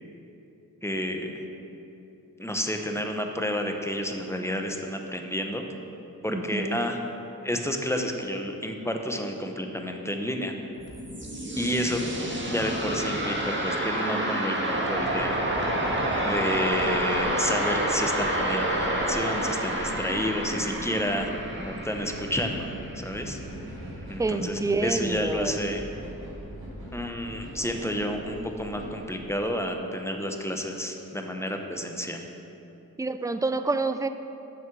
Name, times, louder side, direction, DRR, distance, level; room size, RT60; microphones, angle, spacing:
voice 1, 0.8-1.3 2.4-5.7 6.2-7.0 7.4-10.5 11.6-12.0 12.5-15.4 16.2-21.3 21.6-22.7 22.9-23.4 24.1-25.8 26.9-32.2, equal, 5° left, 3 dB, 0.9 m, -30 dB
voice 2, 6.3-6.8 24.2-25.5 33.0-34.1, right 3 dB, 10° right, 10 dB, 0.4 m, -27 dB
sound 1, 10.8-23.5, right 1 dB, 30° right, 1.7 m, -29 dB
sound 2, 16.6-29.2, equal, 75° right, 1.8 m, -41 dB
7.3 x 6.0 x 6.1 m, 2.9 s
cardioid pair, 50°, 37 cm